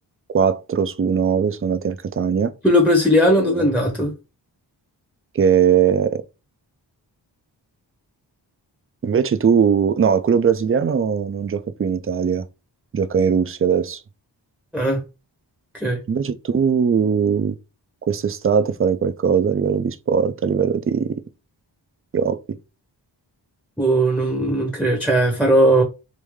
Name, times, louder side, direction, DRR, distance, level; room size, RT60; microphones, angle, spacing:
voice 1, 0.3-2.5 3.3-3.6 5.3-6.2 9.0-12.4 12.9-14.0 16.1-17.6 18.1-21.2 22.1-22.4, right 7 dB, 30° right, 0.4 m, -20 dB
voice 2, 2.6-4.1 14.7-15.0 15.7-16.0 23.8-25.8, equal, ahead, 0.8 m, -18 dB
3.2 x 2.6 x 3.5 m
cardioid pair, 50°, 45 cm